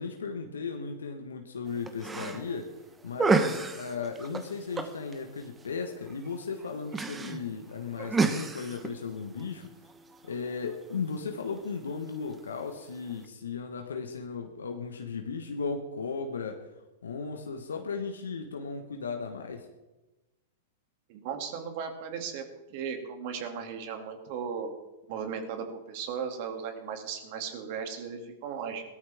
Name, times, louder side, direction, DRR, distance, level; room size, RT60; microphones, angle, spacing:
voice 1, 0.0-2.7 3.0-9.7 10.2-16.6 17.0-19.7, left 5 dB, 80° left, 4 dB, 1.3 m, -36 dB
sound 1, 1.7-13.3, right 4 dB, 15° right, 1.2 m, -34 dB
voice 2, 21.1-22.4 22.7-24.7 25.1-28.8, right 6 dB, 55° right, 5 dB, 2.5 m, -36 dB
17.5 x 13.5 x 3.6 m, 1.1 s
hypercardioid pair, 105°, 0 cm